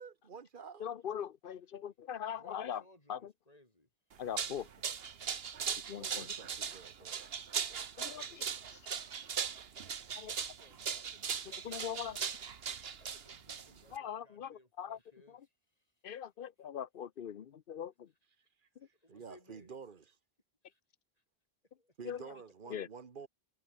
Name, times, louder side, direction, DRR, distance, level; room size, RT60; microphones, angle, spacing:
voice 1, 0.0-0.9 6.0-7.3 7.7-7.9 19.1-20.2 22.0-23.3, right 6 dB, 55° right, 1.5 m, -50 dB
voice 2, 0.8-2.8 3.1-3.3 4.2-4.7 5.9-6.3 8.0-8.8 10.1-10.4 11.6-12.3 13.9-15.0 15.3-15.5 16.0-18.1 22.0-22.2 22.7-22.9, left 9 dB, 60° left, 0.9 m, -41 dB
voice 3, 2.3-3.9 10.6-11.7 13.0-15.4 18.9-19.8 20.7-20.8 21.8-21.9, left 1 dB, 40° left, 4.0 m, -63 dB
sound 1, 4.1-14.0, right 7 dB, 70° right, 1.3 m, -39 dB
omnidirectional pair, 1.0 m